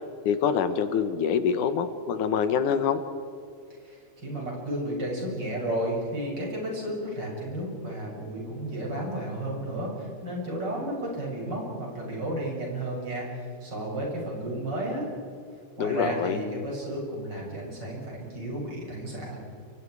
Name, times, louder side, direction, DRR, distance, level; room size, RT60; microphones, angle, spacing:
voice 1, 0.3-3.0 15.8-16.4, left 7 dB, 80° left, 9 dB, 2.7 m, -25 dB
voice 2, 3.8-15.1 15.8-19.4, right 1 dB, 35° right, -2 dB, 8.0 m, -32 dB
29.5 x 25.0 x 4.9 m, 2.3 s
omnidirectional pair, 3.5 m